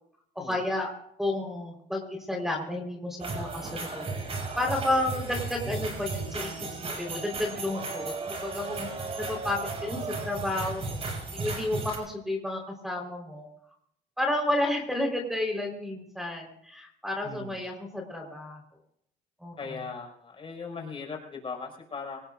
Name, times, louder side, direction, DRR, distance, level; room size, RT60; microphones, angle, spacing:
voice 1, 0.3-0.9 1.2-4.1 4.6-8.9 9.2-13.5 14.2-18.6 19.4-19.8, left 1 dB, ahead, 2 dB, 4.2 m, -31 dB
sound 1, 3.2-12.0, right 3 dB, 35° right, 6.1 m, -35 dB
voice 2, 17.2-17.6 19.6-22.2, left 4 dB, 30° left, 1 dB, 5.9 m, -39 dB
25.0 x 19.0 x 2.6 m, 0.70 s
cardioid pair, 110°, 17 cm